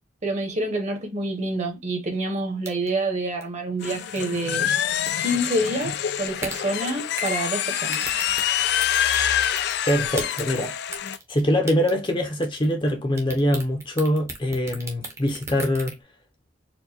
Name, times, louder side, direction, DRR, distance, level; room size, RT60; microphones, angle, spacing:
voice 1, 0.2-4.7 5.2-8.0, right 1 dB, 35° right, 1.0 m, -27 dB
sound 1, 2.6-3.0 3.4-3.5 4.2-4.4 4.9-5.1 5.7-5.9 6.4-6.6 7.2-7.4 7.9-9.2 9.4-10.6 10.9-11.4 11.7-12.1 12.4-12.9 13.2-15.9, right 2 dB, 15° right, 0.8 m, -35 dB
sound 2, 3.8-11.2, left 10 dB, 55° left, 0.3 m, -26 dB
voice 2, 9.9-10.7 11.3-15.9, equal, 25° left, 0.7 m, -23 dB
4.4 x 2.4 x 2.8 m
head